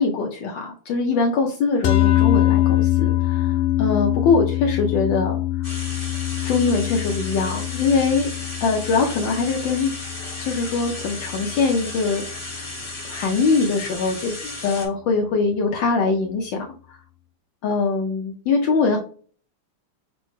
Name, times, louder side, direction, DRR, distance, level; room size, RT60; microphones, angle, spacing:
voice 1, 0.0-5.4 5.7-5.8 6.4-8.3 8.6-9.9 10.4-12.7 13.1-17.0 17.6-19.0, left 4 dB, 70° left, 0 dB, 1.2 m, -22 dB
sound 1, 1.8-12.3, left 15 dB, 85° left, 1.5 m, -24 dB
sound 2, 5.6-14.9, left 2 dB, 20° left, 1.0 m, -35 dB
6.2 x 2.1 x 3.0 m, 0.43 s
omnidirectional pair, 2.4 m